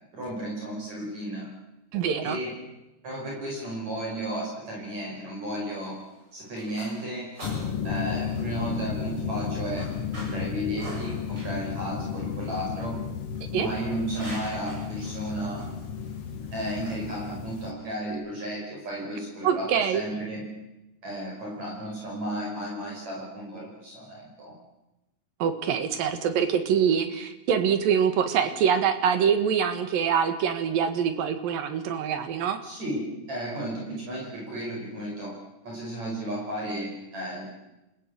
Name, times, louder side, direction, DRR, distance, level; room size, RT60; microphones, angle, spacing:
voice 1, 0.1-1.5 2.2-2.5 3.0-6.0 6.3-7.3 7.8-9.9 10.2-13.0 13.5-15.6 16.5-20.5 21.0-24.5 32.6-35.3 35.6-37.5, right 1 dB, 50° right, -2 dB, 6.4 m, -33 dB
voice 2, 1.9-2.4 13.5-13.7 19.4-20.0 25.4-32.6, right 7 dB, 75° right, 9 dB, 3.4 m, -24 dB
sound 1, 5.8-18.1, right 1 dB, 30° right, 8.3 m, -47 dB
sound 2, 7.4-17.7, left 7 dB, 55° left, 2.0 m, -33 dB
28.5 x 16.0 x 8.7 m, 0.99 s
omnidirectional pair, 4.2 m